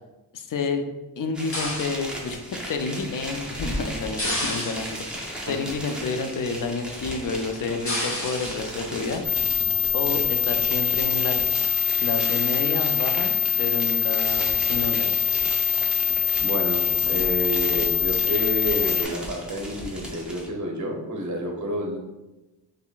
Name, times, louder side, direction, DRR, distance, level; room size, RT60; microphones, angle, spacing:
voice 1, 0.3-0.8 1.2-9.2 9.9-11.4 12.0-15.1, left 4 dB, 50° left, 6 dB, 0.5 m, -29 dB
sound 1, 1.3-20.5, equal, ahead, 0.8 m, -36 dB
sound 2, 1.5-2.1 4.2-5.2 7.9-8.7 9.8-10.1 10.7-11.3 11.6-11.7 12.1-12.5 13.0-13.4 13.7-13.8 14.0-14.6 15.1-15.4 16.2-16.5, left 1 dB, 30° left, 1.0 m, -33 dB
sound 3, 9.2-19.0, left 12 dB, 75° left, 0.8 m, -24 dB
voice 2, 16.4-22.0, equal, 40° right, 0 dB, 0.8 m, -29 dB
3.8 x 3.3 x 2.4 m, 1.1 s
wide cardioid pair, 75°, 43 cm